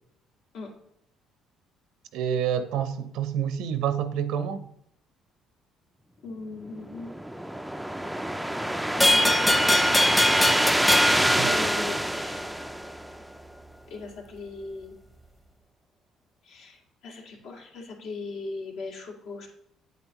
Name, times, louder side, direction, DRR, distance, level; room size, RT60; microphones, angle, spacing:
voice 1, 2.1-4.7 11.4-11.6, right 8 dB, 80° right, 0.7 m, -28 dB
voice 2, 6.2-7.1 8.9-10.2 11.4-12.8 13.9-15.0 16.4-19.5, left 3 dB, 80° left, 2.1 m, -39 dB
sound 1, 6.8-13.3, right 1 dB, 5° right, 0.4 m, -26 dB
sound 2, 9.0-12.2, left 1 dB, 15° left, 0.8 m, -23 dB
8.6 x 8.0 x 3.0 m
cardioid pair, 105°, 0 cm